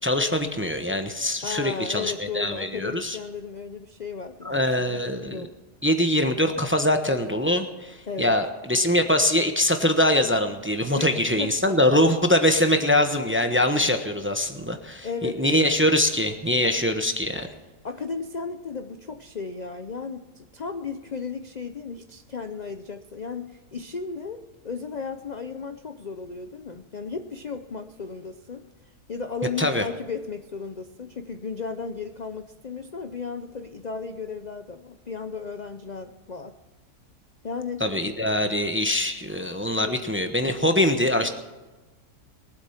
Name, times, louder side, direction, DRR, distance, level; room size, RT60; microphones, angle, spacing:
voice 1, 0.0-3.2 4.4-5.4 5.8-17.5 29.6-29.8 37.8-41.3, left 1 dB, 10° right, 6 dB, 0.8 m, -23 dB
voice 2, 1.4-5.5 8.1-8.4 10.9-11.8 15.0-15.4 17.8-28.7 29.1-36.5 37.4-37.9 39.7-40.0, left 5 dB, 45° left, 8 dB, 0.5 m, -35 dB
22.0 x 8.3 x 5.8 m, 1.2 s
omnidirectional pair, 1.7 m